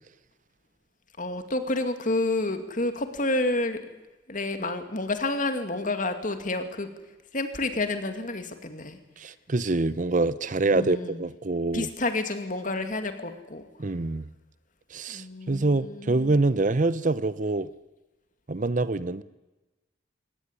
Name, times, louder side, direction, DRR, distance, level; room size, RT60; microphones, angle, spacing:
voice 1, 1.2-3.8 4.3-6.9 7.3-9.0 10.6-11.2 11.7-13.7 15.1-16.4, left 2 dB, 45° left, 2.4 m, -29 dB
voice 2, 9.2-11.9 13.8-14.2 14.9-17.7 18.5-19.2, right 2 dB, 40° right, 0.7 m, -25 dB
22.0 x 18.5 x 9.9 m
head